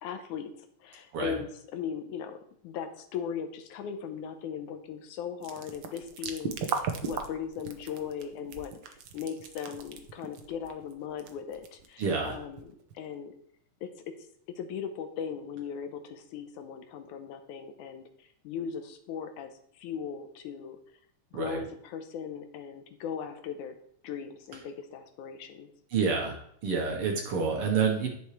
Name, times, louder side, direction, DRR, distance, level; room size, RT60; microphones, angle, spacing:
voice 1, 0.0-2.4 2.6-13.3 13.8-13.9 14.6-20.8 21.3-23.8 24.0-25.7, left 7 dB, 85° left, 7 dB, 2.3 m, -38 dB
sound 1, 5.4-13.1, right 6 dB, 90° right, 1.0 m, -37 dB
voice 2, 12.0-12.4 21.3-21.6 25.9-26.4 26.6-28.1, right 5 dB, 60° right, 1 dB, 1.8 m, -28 dB
10.5 x 6.9 x 3.2 m, 0.67 s
omnidirectional pair, 3.4 m